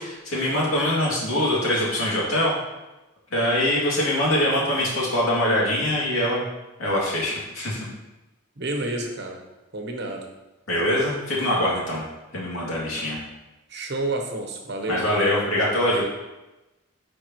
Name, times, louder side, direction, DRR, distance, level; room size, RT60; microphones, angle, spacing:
voice 1, 0.0-2.5 3.3-6.5 6.8-7.8 10.7-12.0 12.3-13.2 14.9-16.0, left 1 dB, 75° left, -5 dB, 2.4 m, -23 dB
voice 2, 8.6-9.4 9.7-10.3 13.7-15.3, right 2 dB, 50° right, 2 dB, 1.0 m, -30 dB
9.5 x 5.0 x 3.0 m, 1.0 s
head